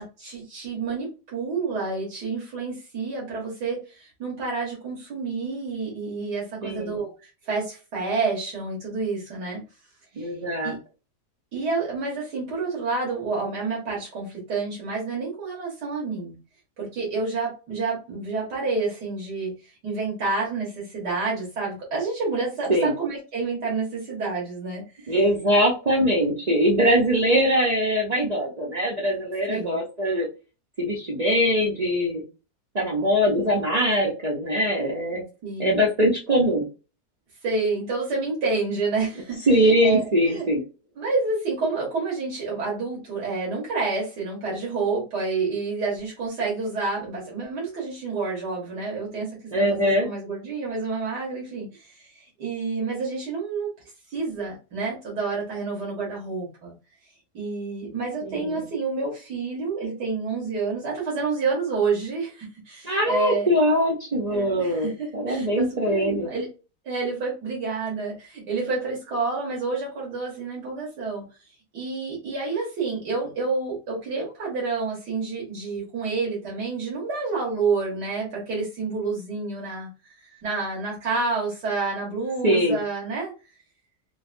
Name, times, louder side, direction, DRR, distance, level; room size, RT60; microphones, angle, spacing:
voice 1, 0.0-9.6 10.2-10.3 10.6-10.8 11.5-16.3 16.8-25.2 29.5-29.8 35.4-35.8 37.4-39.5 39.8-40.5 41.0-49.3 49.6-53.7 54.1-56.7 57.3-63.5 64.3-66.5 66.9-71.2 71.7-83.3, right 4 dB, 80° right, -4 dB, 1.9 m, -29 dB
voice 2, 6.6-7.0 10.2-10.7 22.7-22.9 25.1-30.3 30.8-32.2 32.7-35.2 35.6-36.6 39.5-40.6 49.5-50.1 58.2-58.7 62.8-66.3 82.4-82.8, equal, 60° right, -2 dB, 0.4 m, -22 dB
4.4 x 2.1 x 2.5 m, 0.32 s
omnidirectional pair, 1.7 m